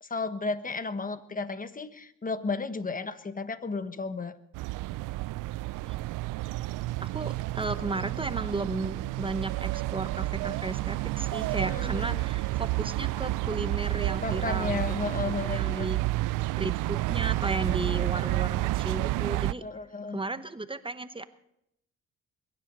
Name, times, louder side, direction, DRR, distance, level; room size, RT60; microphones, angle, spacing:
voice 1, 0.0-4.4 11.7-12.2 14.2-15.9 19.6-20.2, left 4 dB, 25° left, 11 dB, 1.3 m, -33 dB
sound 1, 4.5-19.5, right 18 dB, 75° right, 0.5 m, -30 dB
voice 2, 7.0-15.1 15.4-16.0 16.6-19.6 20.1-21.3, right 2 dB, 15° right, 12 dB, 1.0 m, -34 dB
22.0 x 10.5 x 5.5 m, 0.79 s
supercardioid pair, 65°, 32 cm